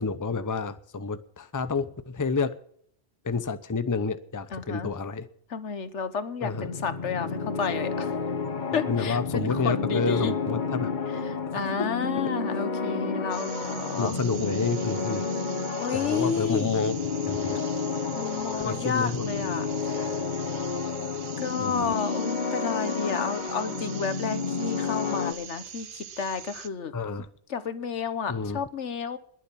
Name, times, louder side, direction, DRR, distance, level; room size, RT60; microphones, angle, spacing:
voice 1, 0.0-2.5 3.2-5.3 6.4-6.7 8.9-10.9 14.0-15.3 15.9-16.9 17.3-17.6 18.6-19.2 21.6-21.9 26.9-27.3 28.3-28.6, left 4 dB, 20° left, 12 dB, 0.7 m, -29 dB
voice 2, 4.5-4.9 5.5-8.1 8.7-10.3 11.2-14.2 15.8-16.9 18.1-20.1 21.4-26.9 27.5-29.2, left 6 dB, 80° left, 11 dB, 1.5 m, -31 dB
sound 1, 6.5-25.3, left 4 dB, 45° left, 1.1 m, -31 dB
sound 2, 13.3-26.7, right 8 dB, 55° right, 0.8 m, -43 dB
21.5 x 7.3 x 5.7 m, 0.63 s
omnidirectional pair, 1.2 m